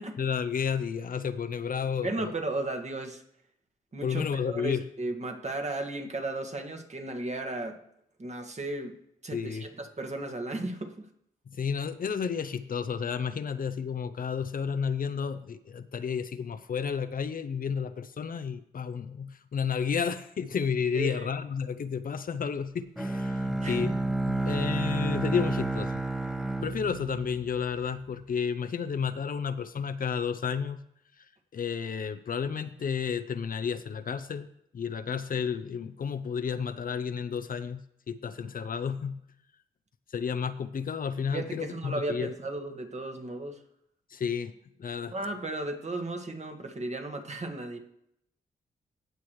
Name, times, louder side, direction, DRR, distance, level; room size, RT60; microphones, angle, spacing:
voice 1, 0.2-2.3 4.0-4.8 9.3-9.6 11.6-23.9 24.3-25.9 26.6-30.8 31.5-34.5 34.7-39.2 40.1-42.3 44.1-44.5 44.8-45.1, left 6 dB, 55° left, 10 dB, 0.7 m, -31 dB
voice 2, 2.0-3.2 3.9-7.8 8.2-8.9 9.2-11.1 20.9-21.3 23.6-24.0 41.3-43.6 45.1-47.8, right 2 dB, 40° right, 4 dB, 1.7 m, -35 dB
Bowed string instrument, 23.0-28.0, right 2 dB, 5° right, 1.1 m, -30 dB
17.0 x 6.3 x 3.2 m, 0.75 s
supercardioid pair, 45°, 17 cm